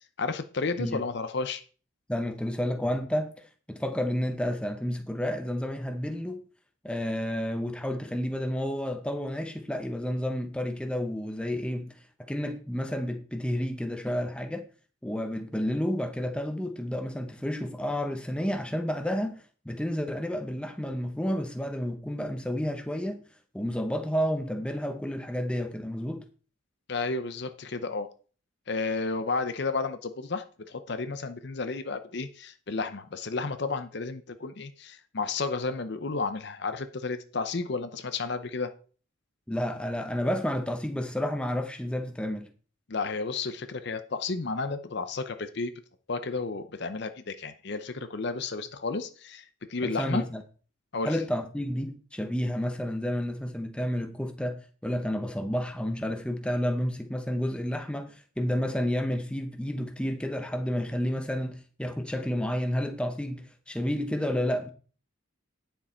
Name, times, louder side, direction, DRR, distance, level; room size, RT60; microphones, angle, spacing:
voice 1, 0.2-1.6 26.9-28.1 28.7-38.7 42.9-45.7 46.1-49.4 49.7-50.2 50.9-51.2, left 4 dB, 55° left, 0.7 m, -32 dB
voice 2, 2.1-3.3 3.7-6.4 6.8-12.0 12.3-14.7 15.0-23.2 23.5-26.2 39.5-42.5 49.8-50.4 51.0-64.7, equal, 5° left, 0.9 m, -30 dB
9.9 x 6.9 x 4.4 m
head